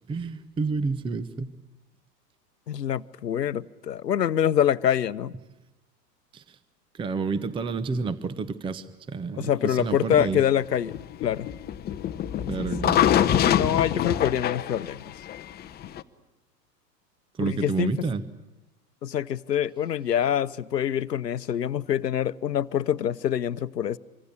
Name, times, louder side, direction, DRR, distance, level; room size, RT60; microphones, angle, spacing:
voice 1, 0.1-1.5 6.3-6.6 6.9-10.4 12.5-13.1 17.3-18.2, right 4 dB, 10° right, 0.9 m, -29 dB
voice 2, 2.7-5.3 9.4-11.0 11.2-11.5 12.4-12.5 13.5-15.0 17.4-17.9 19.0-24.0, left 10 dB, 80° left, 0.9 m, -25 dB
sound 1, 10.1-16.0, left 10 dB, 20° left, 0.9 m, -25 dB
25.5 x 25.5 x 8.6 m
figure-of-eight pair, 100°, 49 cm